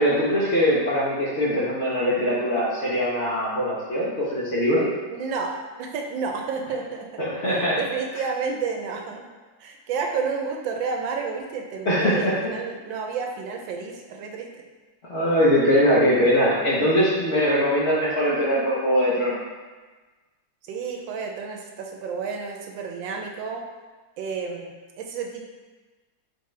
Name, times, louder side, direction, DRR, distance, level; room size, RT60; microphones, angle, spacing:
voice 1, 0.0-4.9 7.2-7.8 11.8-12.4 15.1-19.4, equal, 50° left, -9 dB, 0.8 m, -21 dB
voice 2, 5.1-5.5 5.8-7.1 7.8-9.3 9.6-14.6 20.7-23.6 24.2-25.5, right 5 dB, 80° right, 2 dB, 1.3 m, -30 dB
4.4 x 3.6 x 3.2 m, 1.3 s
omnidirectional pair, 2.0 m